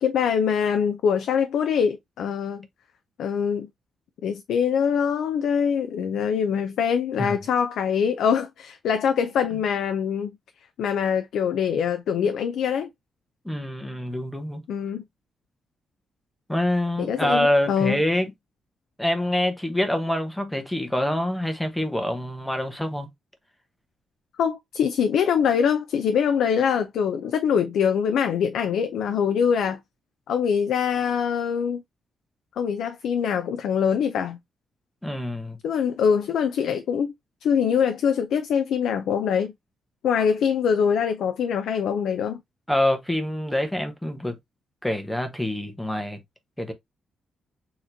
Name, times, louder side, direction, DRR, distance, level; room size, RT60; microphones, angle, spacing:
voice 1, 0.0-2.7 3.2-3.7 4.2-10.3 10.8-12.9 14.7-15.0 17.0-18.0 24.4-29.8 30.3-31.8 32.6-34.4 35.6-37.1 37.4-39.5 40.0-42.4, left 7 dB, 80° left, 0.4 m, -23 dB
voice 2, 13.4-14.6 16.5-18.3 19.0-23.1 35.0-35.6 42.7-44.4 44.8-46.2 46.6-46.7, left 1 dB, 5° left, 0.9 m, -25 dB
6.3 x 3.0 x 2.6 m
cardioid pair, 150°, 0 cm